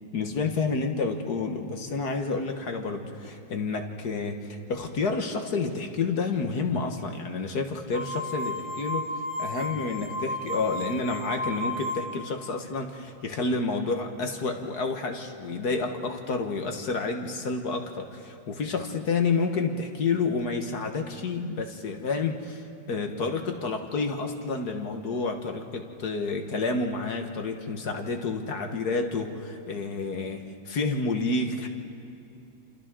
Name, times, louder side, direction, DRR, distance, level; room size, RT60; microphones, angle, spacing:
voice 1, 0.1-9.1 9.4-31.7, left 4 dB, 60° left, 4 dB, 1.8 m, -29 dB
sound 1, 7.9-12.3, left 1 dB, 45° right, 2.4 m, -33 dB
28.5 x 27.5 x 3.8 m, 2.7 s
omnidirectional pair, 2.1 m